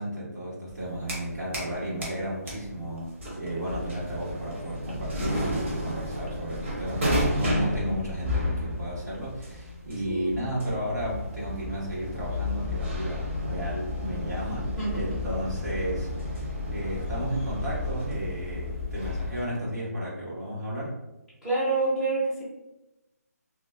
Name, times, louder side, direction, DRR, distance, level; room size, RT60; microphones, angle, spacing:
voice 1, 0.0-14.7 14.9-21.0, right 1 dB, 85° right, -7 dB, 1.3 m, -33 dB
sound 1, 0.7-1.7 2.0-19.5, left 1 dB, 45° right, 0.8 m, -32 dB
voice 2, 10.1-10.4 14.6-15.1 21.4-22.4, right 3 dB, 5° right, -11 dB, 0.5 m, -28 dB
2.5 x 2.3 x 2.2 m, 0.99 s
hypercardioid pair, 165°, 9 cm